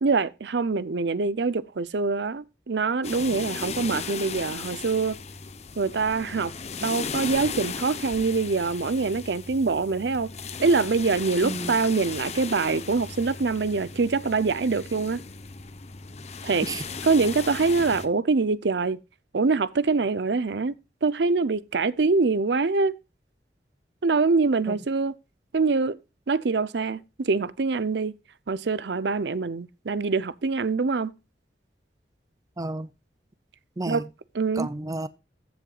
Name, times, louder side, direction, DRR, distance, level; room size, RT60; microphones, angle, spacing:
voice 1, 0.0-5.2 5.8-6.5 6.8-10.3 10.6-15.2 16.4-16.7 17.0-19.0 19.3-20.7 21.0-22.9 24.0-25.1 25.5-26.0 26.3-28.1 28.5-31.1 33.9-34.0 34.3-34.7, right 4 dB, 75° right, 0.6 m, -24 dB
sound 1, 3.0-18.1, left 5 dB, 35° left, 0.8 m, -36 dB
voice 2, 11.4-11.8 16.6-16.8 24.7-24.8 32.6-32.9 33.8-34.1 34.5-35.1, right 2 dB, 20° right, 0.5 m, -31 dB
14.5 x 7.7 x 2.4 m
head